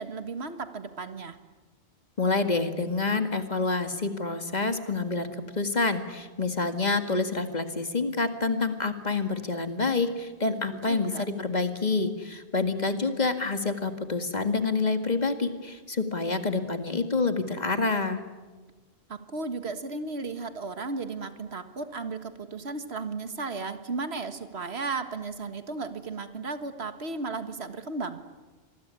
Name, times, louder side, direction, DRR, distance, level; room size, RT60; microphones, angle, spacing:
voice 1, 0.0-1.4 10.7-11.3 19.1-28.2, right 3 dB, 85° right, 10 dB, 1.9 m, -35 dB
voice 2, 2.2-5.3 5.6-18.2, left 3 dB, 40° left, 8 dB, 2.1 m, -27 dB
26.5 x 20.5 x 9.8 m, 1.3 s
omnidirectional pair, 1.1 m